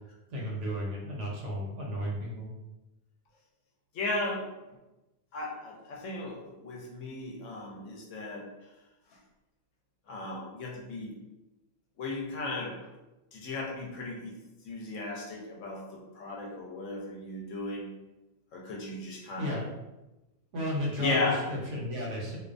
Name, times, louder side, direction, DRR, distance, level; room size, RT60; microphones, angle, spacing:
voice 1, 0.3-2.5 19.4-19.6 20.5-22.4, left 1 dB, 70° right, -3 dB, 1.0 m, -33 dB
voice 2, 3.9-4.4 5.3-8.5 10.1-11.1 12.0-12.8 13.3-14.3 14.6-17.9 18.5-19.6 21.0-21.4, left 2 dB, 70° left, -2 dB, 0.9 m, -35 dB
2.5 x 2.1 x 2.4 m, 1.0 s
omnidirectional pair, 1.4 m